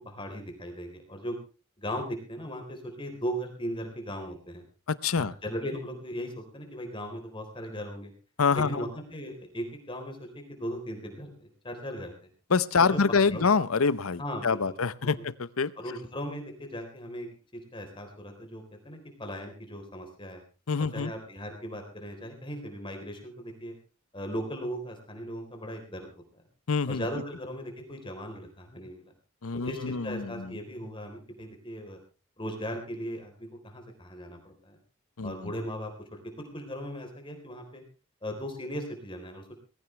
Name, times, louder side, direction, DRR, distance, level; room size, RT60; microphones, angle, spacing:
voice 1, 0.0-1.4 1.8-4.6 5.2-8.1 8.5-12.3 12.8-13.4 14.2-14.8 15.2-15.3 15.8-20.4 20.9-23.7 24.1-26.1 26.9-29.1 29.6-32.0 32.4-34.8 35.2-37.8 38.2-39.5, equal, 25° left, 4 dB, 3.9 m, -38 dB
voice 2, 4.9-5.3 8.4-8.8 12.5-15.7 20.7-21.1 26.7-27.0 29.4-30.5 35.2-35.3, left 5 dB, 80° left, 17 dB, 0.8 m, -26 dB
20.5 x 15.5 x 3.3 m, 0.34 s
head